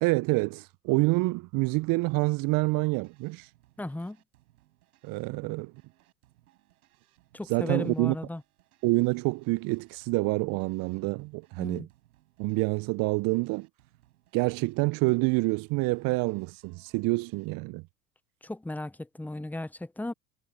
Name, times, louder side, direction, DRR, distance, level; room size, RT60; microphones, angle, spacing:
voice 1, 0.0-3.5 5.0-5.7 7.5-8.1 8.8-11.9 12.4-13.7 14.3-17.8, right 25 dB, 50° right, 0.8 m, -27 dB
sound 1, 2.4-17.6, right 17 dB, 70° right, 7.6 m, -65 dB
voice 2, 3.8-4.2 7.3-8.4 11.6-11.9 18.4-20.1, left 1 dB, 5° left, 0.9 m, -35 dB
figure-of-eight pair, 70°, 46 cm